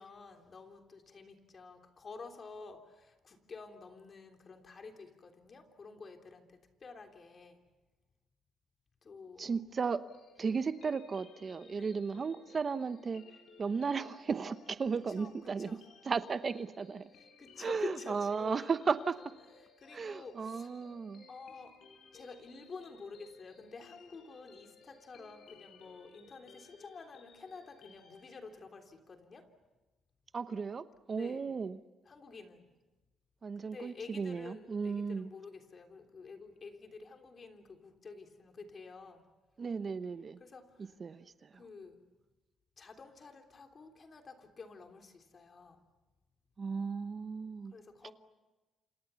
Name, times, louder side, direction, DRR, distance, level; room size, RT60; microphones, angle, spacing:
voice 1, 0.0-7.6 9.0-9.6 10.4-10.6 11.7-12.1 14.9-15.8 17.1-18.7 19.8-20.7 21.3-21.8 22.1-29.5 31.2-31.6 32.1-32.7 33.6-39.3 40.4-41.0 41.5-42.0 42.8-45.8 47.7-48.1, left 4 dB, 40° left, 4 dB, 3.4 m, -50 dB
voice 2, 9.4-10.0 10.4-13.2 13.6-17.1 17.6-19.2 19.9-21.2 30.3-31.8 33.4-35.3 39.6-40.4 40.8-41.6 46.6-47.7 48.0-48.1, right 5 dB, 40° right, 12 dB, 0.9 m, -35 dB
sound 1, 10.1-28.4, left 4 dB, 70° left, 5.7 m, -59 dB
28.0 x 27.5 x 7.0 m, 1.2 s
cardioid pair, 90°, 0 cm